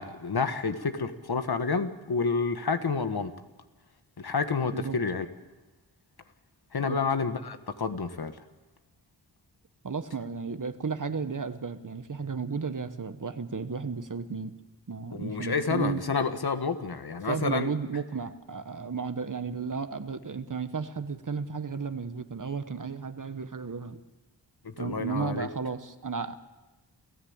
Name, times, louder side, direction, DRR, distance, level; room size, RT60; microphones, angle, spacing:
voice 1, 0.0-3.3 4.2-5.3 6.7-8.4 15.1-17.7 24.6-25.5, left 5 dB, 60° left, 9 dB, 1.6 m, -29 dB
voice 2, 9.8-14.5 14.9-16.0 17.3-24.0 24.8-26.3, right 5 dB, 45° right, 10 dB, 1.3 m, -33 dB
29.0 x 15.5 x 8.8 m, 1.2 s
wide cardioid pair, 70°, 42 cm